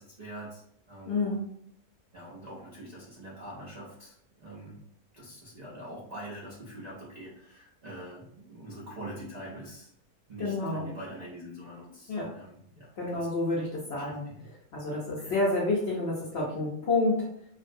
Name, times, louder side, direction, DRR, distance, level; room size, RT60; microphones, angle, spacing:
voice 1, 0.0-1.3 2.1-4.8 5.1-9.9 10.3-13.3 14.0-14.4 15.1-15.4, right 1 dB, 65° right, -6 dB, 0.4 m, -44 dB
voice 2, 1.1-1.4 10.4-10.9 12.1-12.3 13.0-14.3 14.7-17.3, left 2 dB, 60° left, -4 dB, 0.7 m, -29 dB
2.5 x 2.0 x 2.5 m, 0.68 s
omnidirectional pair, 1.6 m